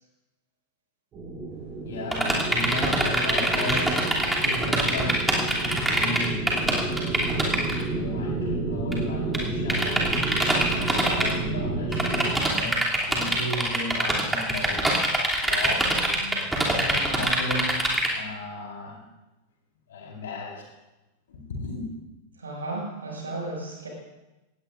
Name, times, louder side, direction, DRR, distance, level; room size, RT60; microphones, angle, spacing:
sound 1, 1.1-12.4, right 3 dB, 30° right, 4.9 m, -31 dB
voice 1, 1.8-15.0 15.4-19.0 19.9-20.7 21.3-21.8, left 1 dB, 60° left, -1 dB, 4.5 m, -35 dB
sound 2, 2.1-7.8 8.9-9.0 9.3-9.4 9.7-11.3 11.9-18.1, right 1 dB, 5° right, 2.9 m, -24 dB
voice 2, 22.4-23.9, right 2 dB, 70° right, -2 dB, 6.2 m, -34 dB
19.0 x 16.5 x 2.6 m, 1.0 s
figure-of-eight pair, 90°, 0 cm